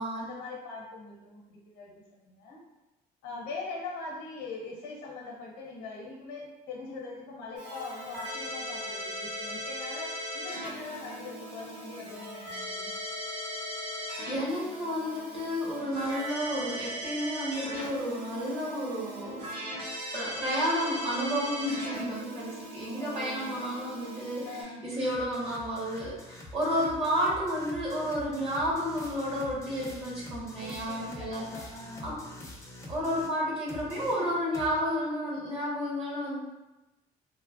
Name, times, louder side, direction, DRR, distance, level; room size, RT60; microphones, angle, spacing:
voice 1, 0.0-2.6 3.2-13.0 23.0-23.6 24.4-24.8 30.6-32.1, left 3 dB, 90° left, -2 dB, 0.8 m, -42 dB
Keyboard (musical), 7.6-24.6, equal, 80° right, 1.2 m, -39 dB
voice 2, 14.3-19.7 20.1-31.5 32.0-32.2 32.9-36.4, equal, 35° right, -6 dB, 1.3 m, -31 dB
sound 1, 24.9-33.4 33.7-34.8, left 1 dB, 15° left, 0.5 m, -46 dB
3.2 x 2.1 x 2.5 m, 1.0 s
cardioid pair, 110°, 17 cm